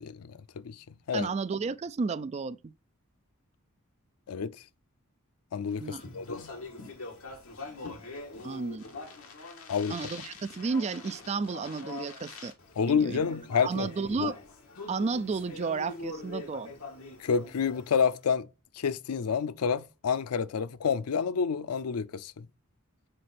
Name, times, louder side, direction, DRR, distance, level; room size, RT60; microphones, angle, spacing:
voice 1, 0.0-1.3 4.3-4.6 5.5-6.5 9.7-10.1 12.8-13.9 14.2-14.3 17.2-18.5 18.8-22.5, left 6 dB, 90° left, 0.5 m, -29 dB
voice 2, 1.1-2.6 5.8-6.0 8.4-8.8 9.9-12.5 12.9-13.2 13.6-14.4 14.9-16.7, right 4 dB, 30° right, 0.3 m, -32 dB
Speech, 5.7-18.1, left 3 dB, 70° left, 1.5 m, -44 dB
6.7 x 4.3 x 4.2 m
head